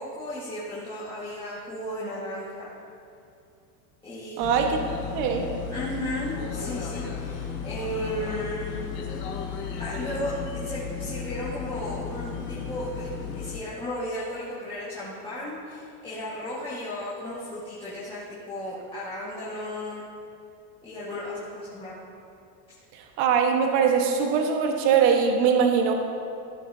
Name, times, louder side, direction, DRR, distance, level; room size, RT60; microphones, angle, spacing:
voice 1, 0.0-2.7 4.0-4.4 4.7-4.8 5.7-8.9 9.8-13.1 13.3-20.0 20.8-21.9, left 1 dB, 10° left, -10 dB, 1.6 m, -34 dB
sound 1, 4.4-13.6, left 6 dB, 50° left, 1.6 m, -34 dB
voice 2, 4.4-4.8 5.1-5.4 23.2-26.0, right 6 dB, 55° right, 2 dB, 1.4 m, -21 dB
15.5 x 10.5 x 2.8 m, 2.5 s
supercardioid pair, 160°, 48 cm